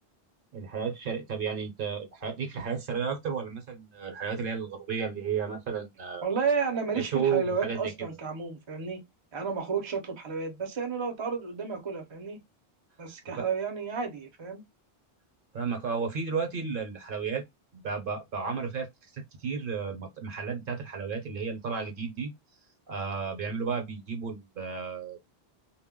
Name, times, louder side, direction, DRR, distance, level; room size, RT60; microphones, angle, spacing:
voice 1, 0.5-6.3 6.9-7.8 13.3-13.4 15.5-17.4 17.7-18.9 19.1-22.3 22.9-25.2, right 6 dB, 60° right, 0.9 m, -33 dB
voice 2, 6.2-9.0 9.3-12.4 13.0-14.6, right 5 dB, 35° right, 0.6 m, -31 dB
2.2 x 2.0 x 3.5 m
omnidirectional pair, 1.0 m